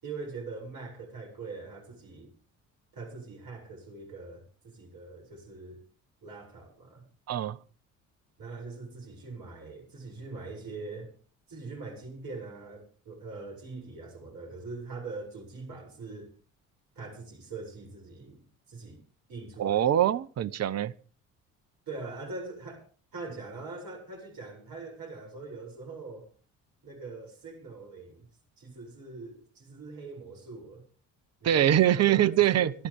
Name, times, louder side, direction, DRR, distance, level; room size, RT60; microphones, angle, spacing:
voice 1, 0.0-2.3 2.9-5.8 6.2-7.1 8.4-11.2 11.5-16.3 17.0-19.0 19.3-20.1 21.9-22.8 23.1-26.3 26.8-28.3 28.6-30.9 31.4-32.7, right 3 dB, 55° right, 7.8 m, -42 dB
voice 2, 7.3-7.6 19.6-20.9 31.4-32.7, right 11 dB, 40° right, 0.9 m, -23 dB
27.5 x 12.0 x 3.7 m
figure-of-eight pair, 50°, 40 cm